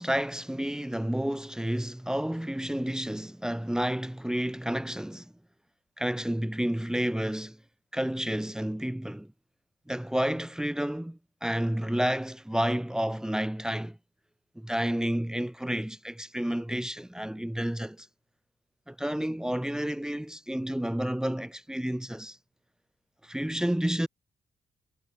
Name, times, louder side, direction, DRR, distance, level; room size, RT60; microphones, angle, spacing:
voice 1, 0.0-5.3 6.0-7.6 7.9-9.3 9.9-14.0 14.6-18.1 18.9-22.4 23.2-24.1, equal, 5° right, 1.8 m, -30 dB
cardioid pair, 125°, 15 cm